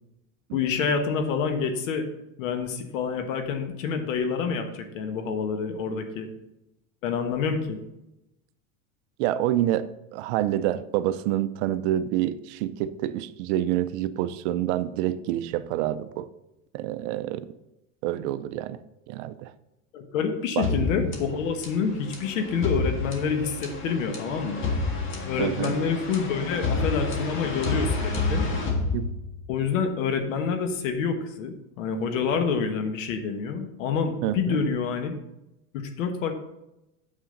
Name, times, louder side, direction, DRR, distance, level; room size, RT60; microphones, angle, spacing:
voice 1, 0.5-2.1 2.4-6.3 7.0-7.8 19.9-24.7 25.3-28.5 29.5-35.2 35.7-36.3, left 6 dB, 75° left, 6 dB, 1.3 m, -27 dB
voice 2, 9.2-9.9 10.1-16.3 16.7-17.5 18.0-18.8 19.1-19.5 20.6-20.7 25.4-25.8 28.9-29.1 34.2-34.6, right 13 dB, 60° right, 14 dB, 0.6 m, -27 dB
sound 1, 20.6-29.6, left 3 dB, 30° left, 1.7 m, -29 dB
8.7 x 7.4 x 3.9 m, 0.90 s
supercardioid pair, 130°, 39 cm